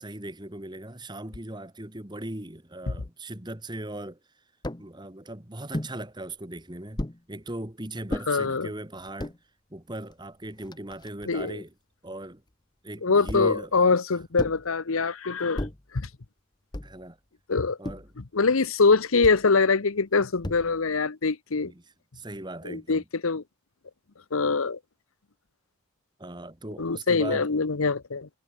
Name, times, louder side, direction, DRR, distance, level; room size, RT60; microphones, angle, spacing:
voice 1, 0.0-4.2 4.8-7.0 7.3-9.3 9.7-11.7 12.0-12.4 12.8-13.9 16.8-17.2 17.8-18.1 21.6-21.8 22.1-23.0 26.2-27.5, right 1 dB, 20° right, 1.9 m, -38 dB
sound 1, 4.6-4.9 5.7-6.0 7.0-7.2 8.1-8.3 9.0-9.4 10.1-10.2 10.4-11.5 13.3-13.6 14.4-14.7 15.6-15.9 16.7-17.1 17.8-18.2 19.2-19.5 20.4-20.9, left 1 dB, 20° left, 0.9 m, -34 dB
voice 2, 8.3-8.7 11.3-11.6 13.0-15.7 15.9-16.1 17.5-17.8 18.2-21.7 22.6-23.4 24.3-24.8 26.8-28.3, left 4 dB, 80° left, 0.9 m, -24 dB
head